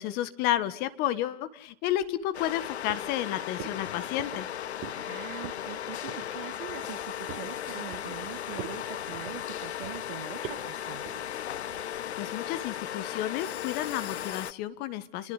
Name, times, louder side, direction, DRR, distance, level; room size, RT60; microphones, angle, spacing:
voice 1, 0.0-4.5 11.8-15.3, left 13 dB, 25° left, 14 dB, 1.6 m, -31 dB
sound 1, 2.0-2.6 2.9-3.2 3.6-3.8 4.2-4.5 4.8-5.1 5.3-5.7 6.1-6.3 6.7-7.5 7.9-8.3 8.6-8.8 9.1-10.0 10.4-10.7 11.1-11.3 11.7-12.0, right 9 dB, 30° right, 4.5 m, -43 dB
sound 2, 2.3-14.5, left 10 dB, 70° left, 1.1 m, -36 dB
voice 2, 5.0-11.1, right 13 dB, 50° right, 14 dB, 1.7 m, -43 dB
29.0 x 22.5 x 8.2 m, 0.64 s
hypercardioid pair, 140°, 34 cm